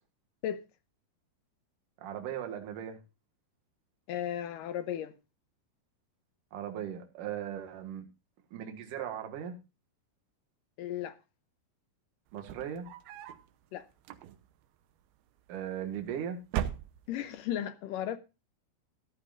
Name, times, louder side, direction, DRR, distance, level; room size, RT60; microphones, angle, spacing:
voice 1, 2.0-3.0 6.5-8.1 8.5-9.6 12.3-12.9 15.5-16.4, right 9 dB, 65° right, 3.0 m, -38 dB
voice 2, 4.1-5.1 10.8-11.2 13.7-13.9 17.1-18.2, left 10 dB, 75° left, 2.1 m, -35 dB
sound 1, 12.3-13.5 14.0-14.7 15.6-16.1 16.4-17.4, right 11 dB, 80° right, 2.8 m, -38 dB
14.5 x 13.0 x 2.5 m
omnidirectional pair, 4.4 m